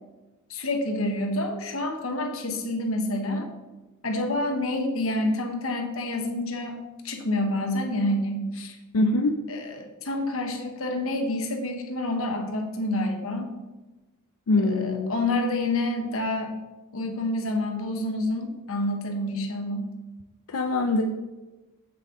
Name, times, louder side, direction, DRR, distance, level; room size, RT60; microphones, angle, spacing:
voice 1, 0.5-3.5 4.0-6.8 7.0-8.8 9.5-13.5 14.7-16.5 16.9-19.9, left 1 dB, 65° left, 3 dB, 1.2 m, -28 dB
voice 2, 8.9-9.4 14.5-15.2 20.5-21.0, left 2 dB, 85° left, 5 dB, 0.5 m, -23 dB
7.6 x 7.2 x 3.8 m, 1.1 s
head